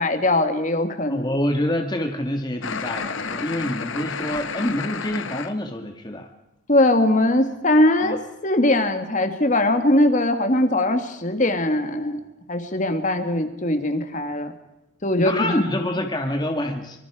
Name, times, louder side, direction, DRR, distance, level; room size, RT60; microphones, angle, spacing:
voice 1, 0.0-1.3 6.7-12.2 12.5-14.5 15.0-15.6, left 1 dB, 40° left, 8 dB, 1.9 m, -21 dB
voice 2, 1.1-6.3 8.0-8.2 15.2-17.0, left 1 dB, 20° left, 4 dB, 1.7 m, -26 dB
sound 1, 2.6-5.5, left 5 dB, 75° left, 1.3 m, -31 dB
25.5 x 24.5 x 4.9 m, 0.95 s
head